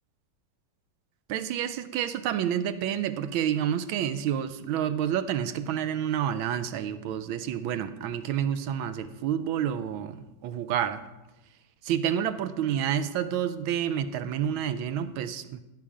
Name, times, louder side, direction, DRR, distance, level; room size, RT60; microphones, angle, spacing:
voice 1, 1.3-11.0 11.8-15.6, right 9 dB, 75° right, 12 dB, 1.4 m, -29 dB
16.0 x 5.9 x 4.9 m, 1.0 s
omnidirectional pair, 2.4 m